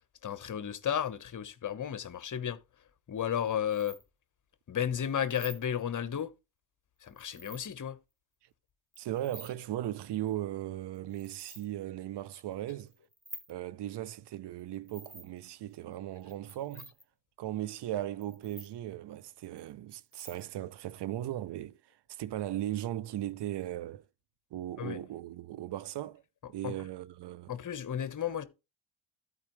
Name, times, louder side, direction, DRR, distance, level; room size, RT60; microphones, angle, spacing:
voice 1, 0.2-2.6 3.1-4.0 4.7-6.3 7.0-8.0 24.8-25.0 26.6-26.8 27.5-28.4, left 9 dB, 40° left, 1.1 m, -33 dB
sound 1, 3.7-4.0 5.2-5.6 7.0-7.6 8.9-9.5 10.9-11.6 12.7-13.5 14.9-15.4 16.2-17.0 18.2-18.7 19.4-19.6 20.0-20.4, right 1 dB, 5° right, 2.1 m, -48 dB
voice 2, 9.0-12.9 13.5-16.9 17.4-24.1 24.5-26.2 26.5-27.5, right 13 dB, 60° right, 0.7 m, -37 dB
13.5 x 4.7 x 3.2 m
supercardioid pair, 65°, 47 cm